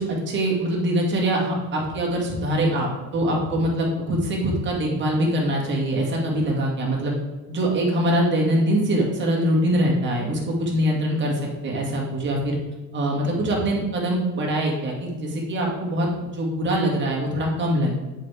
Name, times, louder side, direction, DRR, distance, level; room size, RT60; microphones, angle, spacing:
voice 1, 0.0-7.1 7.5-12.6 12.9-17.9, right 1 dB, 30° right, -2 dB, 1.9 m, -23 dB
7.3 x 5.3 x 3.4 m, 1.2 s
cardioid pair, 130°, 37 cm